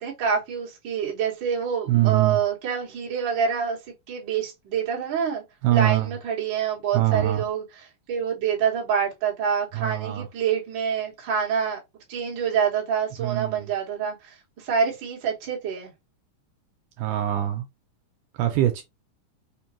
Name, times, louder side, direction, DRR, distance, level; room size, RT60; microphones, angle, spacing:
voice 1, 0.0-3.8 4.1-5.4 5.7-7.6 8.1-11.8 12.1-15.9, right 7 dB, 50° right, 1.6 m, -26 dB
voice 2, 1.9-2.4 5.6-6.1 6.9-7.4 9.7-10.3 13.2-13.7 17.0-17.7 18.4-18.8, right 14 dB, 80° right, 2.0 m, -23 dB
5.1 x 2.2 x 2.9 m
omnidirectional pair, 3.8 m